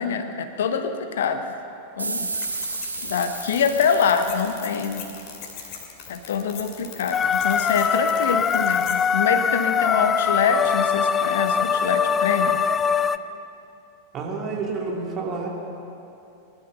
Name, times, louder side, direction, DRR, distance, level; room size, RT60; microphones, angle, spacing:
voice 1, 0.0-1.4 2.0-2.3 3.0-5.1 6.1-12.6, left 6 dB, 60° left, 8 dB, 1.0 m, -25 dB
sound 1, 2.0-5.3, right 3 dB, 80° right, 1.1 m, -33 dB
sound 2, 2.3-9.0, left 7 dB, 45° left, 2.4 m, -39 dB
sound 3, 7.1-13.2, left 6 dB, 20° left, 0.4 m, -22 dB
voice 2, 14.1-15.5, right 4 dB, 30° right, -1 dB, 2.7 m, -29 dB
20.0 x 12.0 x 5.6 m, 2.8 s
figure-of-eight pair, 90°, 0 cm